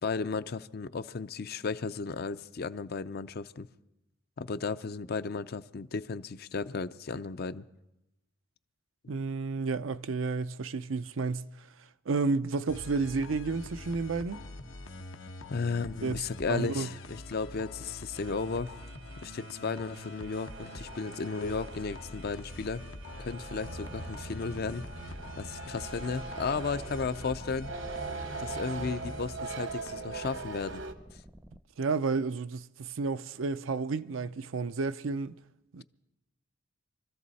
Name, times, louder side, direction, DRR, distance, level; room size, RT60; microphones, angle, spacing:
voice 1, 0.0-3.7 4.4-7.7 15.5-18.8 19.2-22.8 23.2-24.8 25.4-27.7 28.4-30.8 31.1-31.2, left 4 dB, 55° left, 0.5 m, -34 dB
voice 2, 9.1-11.7 12.1-14.5 16.0-16.2 16.5-16.9 31.8-35.4 35.7-35.8, right 4 dB, 85° right, 0.6 m, -31 dB
sound 1, 12.7-30.1, left 1 dB, 85° left, 1.1 m, -45 dB
sound 2, 18.1-30.9, right 4 dB, 70° right, 1.1 m, -42 dB
sound 3, 23.6-31.6, equal, 10° right, 0.5 m, -51 dB
24.5 x 14.0 x 4.1 m
head